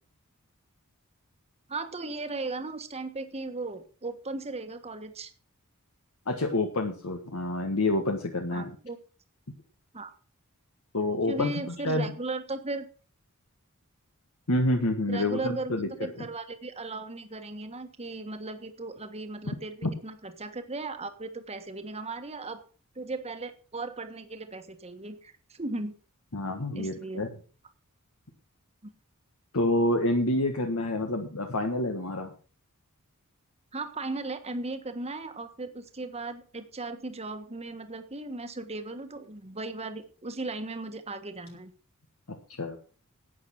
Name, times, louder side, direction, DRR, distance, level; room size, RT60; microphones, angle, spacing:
voice 1, 1.7-5.3 8.5-9.0 9.9-10.1 11.3-12.8 15.1-22.6 22.9-25.9 26.7-27.3 33.7-41.7, right 3 dB, 30° right, 8 dB, 1.4 m, -37 dB
voice 2, 6.3-8.7 10.9-12.1 14.5-15.9 19.4-19.6 19.8-19.9 26.3-27.3 29.5-32.3 42.3-42.8, left 1 dB, 70° left, 4 dB, 1.6 m, -28 dB
12.0 x 8.5 x 5.9 m, 0.39 s
head